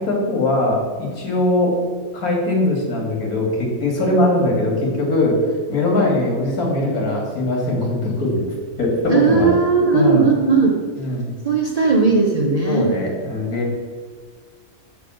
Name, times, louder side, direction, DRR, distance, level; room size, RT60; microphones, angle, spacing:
voice 1, 0.0-1.8 2.1-8.4 8.8-9.6 9.9-10.2 11.0-11.3 12.7-13.7, left 2 dB, 80° left, -1 dB, 2.4 m, -20 dB
voice 2, 9.0-10.8 11.4-12.9, right 4 dB, 35° right, 0 dB, 0.7 m, -17 dB
6.9 x 5.8 x 6.3 m, 1.5 s
omnidirectional pair, 1.5 m